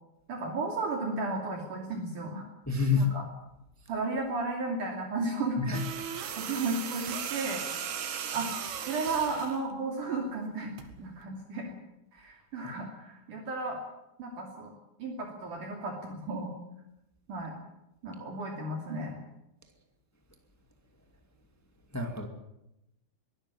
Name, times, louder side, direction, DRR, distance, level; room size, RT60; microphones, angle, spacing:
voice 1, 0.3-2.4 3.0-3.2 3.9-5.8 6.3-7.6 8.3-8.5 8.9-10.7 11.0-11.7 12.1-13.8 14.2-14.7 15.0-16.5 17.3-17.5 18.0-19.2, right 3 dB, 55° right, 1 dB, 4.1 m, -34 dB
voice 2, 2.7-3.1 5.6-5.8 21.9-22.3, left 4 dB, 15° left, 4 dB, 0.5 m, -27 dB
sound 1, 5.7-9.6 10.8-11.0, right 8 dB, 70° right, 3.7 m, -37 dB
23.0 x 12.5 x 10.0 m, 0.88 s
omnidirectional pair, 4.7 m